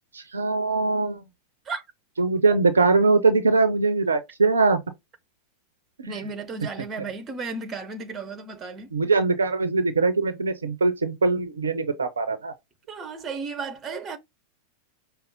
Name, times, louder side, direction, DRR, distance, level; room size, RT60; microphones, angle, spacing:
voice 1, 0.1-1.2 2.2-4.8 6.0-6.1 8.9-12.5, right 3 dB, 75° right, 0.5 m, -22 dB
voice 2, 6.1-8.9 12.9-14.2, right 4 dB, 20° right, 0.9 m, -34 dB
5.3 x 2.0 x 3.9 m
figure-of-eight pair, 90°, 0 cm